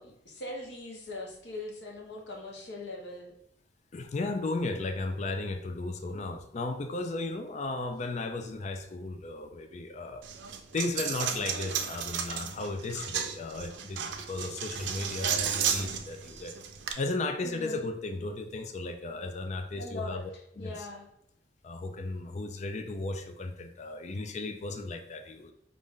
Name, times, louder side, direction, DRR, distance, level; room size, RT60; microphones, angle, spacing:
voice 1, 0.0-3.3 17.4-17.9 19.7-21.1, left 2 dB, 70° left, 0 dB, 1.0 m, -41 dB
voice 2, 3.9-10.2 10.7-16.5 17.0-20.9 21.6-25.5, left 2 dB, 40° left, 6 dB, 0.4 m, -35 dB
Coin (dropping), 10.2-16.9, right 7 dB, 85° right, 0.5 m, -33 dB
5.1 x 2.4 x 3.6 m, 0.76 s
head